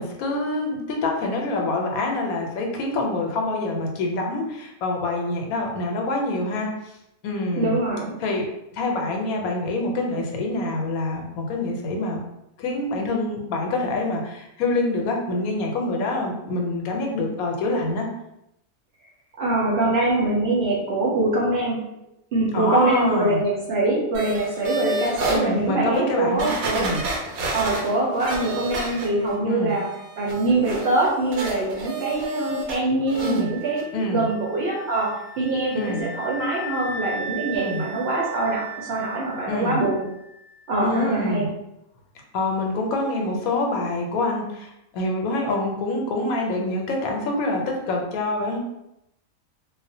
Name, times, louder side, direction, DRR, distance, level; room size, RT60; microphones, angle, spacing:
voice 1, 0.0-6.9 7.2-7.8 8.2-12.2 12.6-18.1 22.5-23.4 25.3-27.4 29.4-29.7 33.2-33.5 33.9-34.3 35.7-36.1 37.5-37.8 39.5-39.8 40.8-41.5 42.3-48.6, left 2 dB, 85° left, 1 dB, 1.0 m, -26 dB
voice 2, 7.6-8.1 19.4-21.8 22.3-26.9 27.5-29.9 30.2-35.1 35.4-40.0 40.7-41.5, right 2 dB, 60° right, -4 dB, 0.7 m, -23 dB
sound 1, 24.1-25.4 25.9-26.0 26.4-29.4 29.7-32.8 33.1-33.4 33.8-33.9, right 2 dB, 80° right, 1.0 m, -30 dB
sound 2, 33.4-40.2, right 1 dB, 65° left, 0.3 m, -37 dB
2.3 x 2.0 x 2.6 m, 0.84 s
omnidirectional pair, 1.5 m